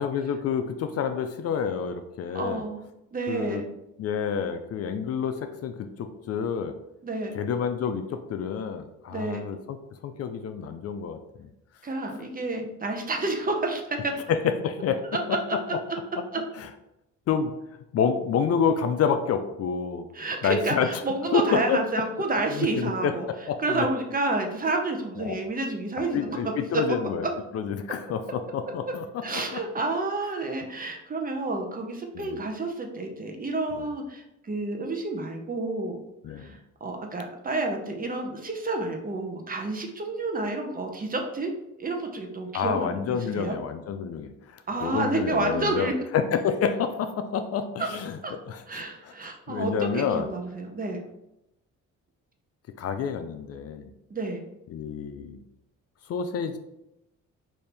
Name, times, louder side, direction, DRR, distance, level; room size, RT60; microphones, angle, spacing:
voice 1, 0.0-2.6 3.3-3.6 4.0-5.8 6.3-6.7 7.3-9.8 10.0-11.5 14.3-15.0 16.6-16.7 17.3-17.5 17.9-20.1 20.4-20.9 21.3-21.4 21.7-21.8 22.5-23.1 23.5-23.9 25.3-25.4 26.1-27.3 27.5-29.4 32.2-32.4 36.2-36.6 42.5-49.1 49.5-50.3 52.8-53.9 54.7-55.4 56.1-56.6, left 7 dB, 55° left, 8 dB, 0.4 m, -28 dB
voice 2, 2.3-2.8 3.1-3.7 7.0-7.4 9.1-9.5 11.8-14.2 15.1-15.8 16.3-16.4 20.1-23.3 23.6-27.3 28.9-29.0 29.2-36.0 36.3-41.5 41.8-43.6 44.7-46.0 47.8-47.9 48.2-48.3 48.7-51.0 54.1-54.4, right 2 dB, 30° right, 3 dB, 0.7 m, -30 dB
4.2 x 2.7 x 3.3 m, 0.88 s
cardioid pair, 90°, 30 cm